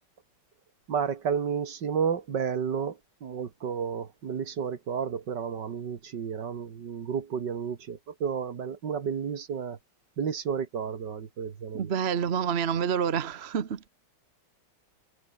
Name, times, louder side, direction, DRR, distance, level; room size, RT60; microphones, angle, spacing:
voice 1, 0.9-9.8 10.2-11.9, right 7 dB, 65° right, 2.3 m, -31 dB
voice 2, 11.7-13.8, right 7 dB, 40° right, 1.1 m, -28 dB
omnidirectional pair, 2.1 m